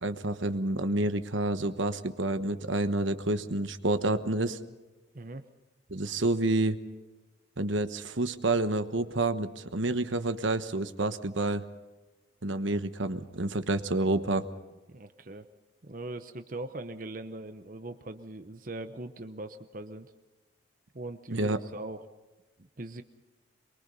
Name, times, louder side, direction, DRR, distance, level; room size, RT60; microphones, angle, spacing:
voice 1, 0.0-4.6 5.9-6.8 7.6-11.6 12.4-14.4 21.3-21.6, right 2 dB, 75° right, 10 dB, 1.2 m, -29 dB
voice 2, 5.1-5.5 14.9-15.5 15.8-20.1 20.9-22.0 22.6-23.0, right 2 dB, 45° right, 9 dB, 0.9 m, -41 dB
23.5 x 23.0 x 5.5 m, 1.2 s
head